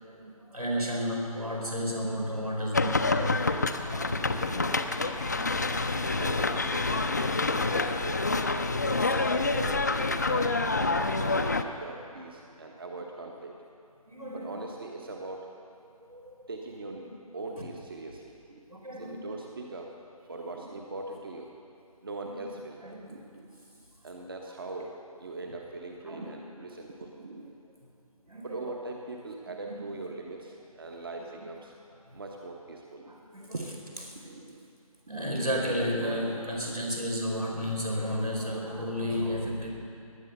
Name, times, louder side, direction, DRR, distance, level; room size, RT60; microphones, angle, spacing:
voice 1, 0.0-3.4 3.9-4.6 4.9-6.2 7.5-7.6 9.0-9.1 10.4-11.2 14.1-14.7 15.9-16.4 17.6-17.7 18.7-19.3 22.2-22.3 22.8-23.2 26.0-26.4 28.3-28.8 29.5-29.9 33.1-33.6 34.1-34.2 35.1-39.7, equal, 90° right, -1 dB, 4.5 m, -33 dB
sound 1, 2.7-11.6, left 3 dB, 30° left, 0.5 m, -27 dB
voice 2, 3.4-3.7 4.9-5.2 5.5-5.7 6.2-7.1 7.7-8.4 8.8-10.6 10.9-13.6 14.3-15.5 16.5-18.6 19.0-19.9 20.2-21.5 22.0-22.8 23.1-27.5 28.4-31.7 32.1-33.2 33.5-33.7 34.2-34.7 36.5-36.8, right 2 dB, 40° right, 2 dB, 1.2 m, -41 dB
18.5 x 10.5 x 6.8 m, 2.6 s
figure-of-eight pair, 155°, 19 cm